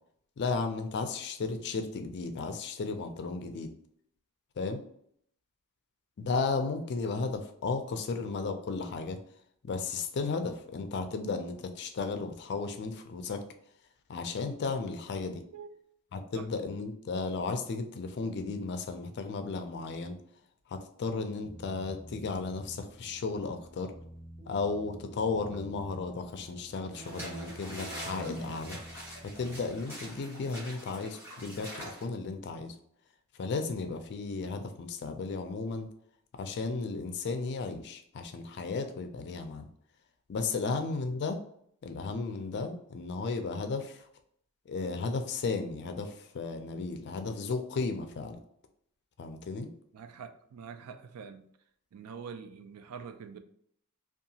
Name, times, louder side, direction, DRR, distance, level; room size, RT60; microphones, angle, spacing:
voice 1, 0.4-3.7 4.6-4.8 6.2-9.2 9.6-13.4 14.1-15.4 16.1-20.2 20.7-23.9 24.5-28.8 29.2-32.8 33.4-35.9 36.3-39.7 40.3-41.4 41.8-44.0 44.7-48.4 49.2-49.7, left 4 dB, 50° left, 0.4 m, -34 dB
Keyboard (musical), 21.4-29.8, right 2 dB, 30° right, 1.5 m, -47 dB
sound 1, 26.9-32.0, equal, 10° right, 1.4 m, -44 dB
voice 2, 49.9-51.4 51.9-53.4, right 6 dB, 80° right, 0.3 m, -45 dB
2.7 x 2.3 x 2.7 m
head